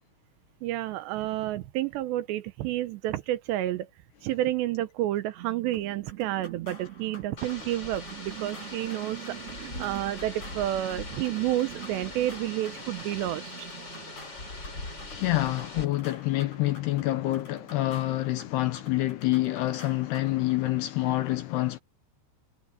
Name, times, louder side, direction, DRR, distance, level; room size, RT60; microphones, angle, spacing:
voice 1, 0.6-3.9 4.2-13.7, right 14 dB, 75° right, 2.8 m, -30 dB
sound 1, 5.4-17.8, right 15 dB, 55° right, 1.9 m, -46 dB
sound 2, 5.7-20.6, left 3 dB, 40° left, 9.4 m, -51 dB
newjersey OC musicpier rear, 7.4-15.9, left 2 dB, 20° left, 6.4 m, -41 dB
voice 2, 15.1-21.8, left 16 dB, 75° left, 2.6 m, -27 dB
omnidirectional pair, 5.5 m